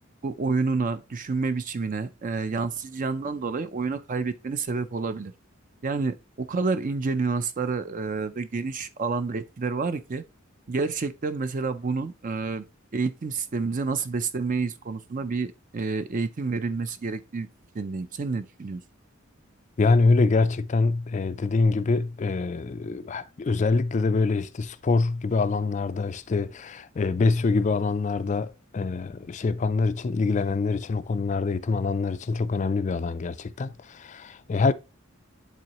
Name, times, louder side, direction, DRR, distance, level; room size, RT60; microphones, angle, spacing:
voice 1, 0.2-5.3 5.8-10.2 10.7-12.6 12.9-17.5 17.7-18.8, right 4 dB, 40° right, 0.5 m, -29 dB
voice 2, 19.8-34.7, left 3 dB, 35° left, 0.4 m, -25 dB
10.5 x 3.8 x 3.0 m
head